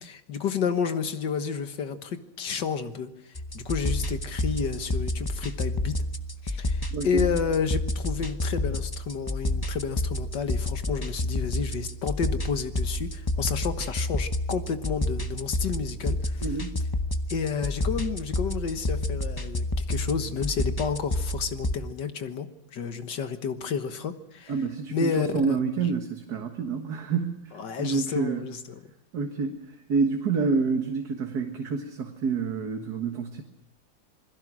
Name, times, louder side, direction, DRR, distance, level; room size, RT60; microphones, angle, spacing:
voice 1, 0.0-3.1 3.5-6.0 6.4-16.5 17.3-22.5 22.7-24.5 24.9-25.9 27.5-28.8, left 6 dB, 70° left, 9 dB, 2.0 m, -30 dB
sound 1, 3.3-21.8, left 1 dB, 25° left, 0.4 m, -30 dB
voice 2, 6.9-7.3 16.4-16.8 24.5-27.5 27.8-28.5 29.1-33.4, right 5 dB, 60° right, 4 dB, 2.0 m, -28 dB
27.5 x 21.0 x 6.2 m, 0.77 s
omnidirectional pair, 2.0 m